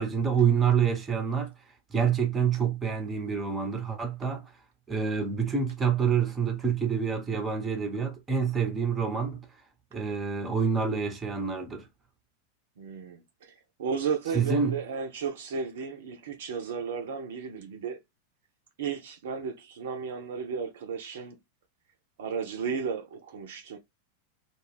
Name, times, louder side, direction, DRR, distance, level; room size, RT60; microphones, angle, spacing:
voice 1, 0.0-1.5 1.9-4.4 4.9-9.5 9.9-11.9 14.3-14.7, right 6 dB, 15° right, 0.7 m, -27 dB
voice 2, 12.8-13.5 13.8-18.0 18.8-21.4 22.2-23.8, right 6 dB, 60° right, 0.5 m, -34 dB
2.4 x 2.3 x 3.2 m
figure-of-eight pair, 90°, 0 cm